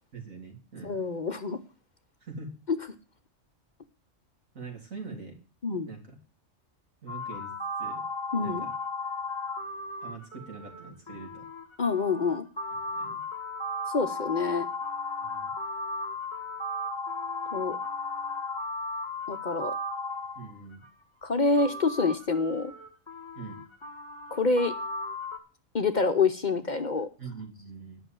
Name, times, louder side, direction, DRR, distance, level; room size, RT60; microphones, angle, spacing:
voice 1, 0.1-1.0 2.2-2.5 4.5-5.4 5.9-6.2 7.0-7.5 7.8-8.0 8.4-8.7 10.0-11.5 12.8-13.2 15.2-15.5 20.4-20.8 23.4-23.6 27.2-28.0, right 4 dB, 85° right, 1 dB, 3.6 m, -43 dB
voice 2, 0.8-1.6 2.7-2.8 5.6-5.9 8.3-8.7 11.8-12.4 13.9-14.7 17.5-17.8 19.3-19.7 21.2-22.7 24.3-24.7 25.7-27.1, left 4 dB, 45° left, 8 dB, 0.8 m, -26 dB
sound 1, 7.1-20.9 21.6-25.4, left 2 dB, 20° left, 1.4 m, -35 dB
11.0 x 6.2 x 7.5 m, 0.36 s
omnidirectional pair, 1.4 m